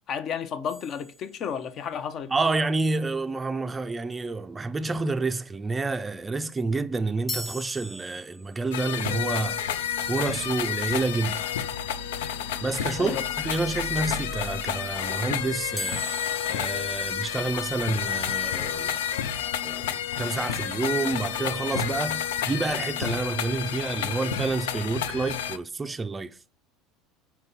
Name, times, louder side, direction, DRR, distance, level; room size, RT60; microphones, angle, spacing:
voice 1, 0.1-2.3 13.0-13.2, left 7 dB, 50° left, 0.7 m, -32 dB
sound 1, 0.7-2.0 7.3-8.8 15.8-17.9, left 1 dB, 15° left, 1.4 m, -39 dB
voice 2, 2.3-9.7 10.1-11.5 12.6-16.0 16.5-19.0 19.6-26.4, right 3 dB, 20° right, 0.4 m, -29 dB
sound 2, 8.7-25.6, left 8 dB, 85° left, 0.4 m, -30 dB
4.4 x 4.4 x 5.3 m
supercardioid pair, 90°, 0 cm